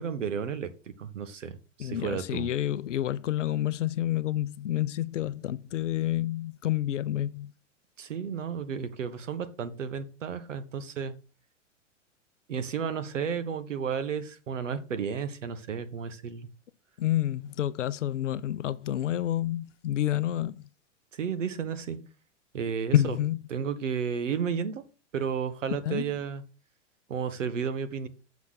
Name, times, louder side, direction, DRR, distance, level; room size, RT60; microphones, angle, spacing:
voice 1, 0.0-2.5 8.0-11.1 12.5-16.5 21.2-22.0 22.5-23.2 23.5-24.8 25.1-26.4 27.1-28.1, right 7 dB, 75° right, 1.1 m, -32 dB
voice 2, 1.8-7.5 17.0-20.7 22.9-23.4 25.7-26.1, left 12 dB, 75° left, 0.6 m, -29 dB
7.0 x 4.2 x 6.4 m
figure-of-eight pair, 100°, 37 cm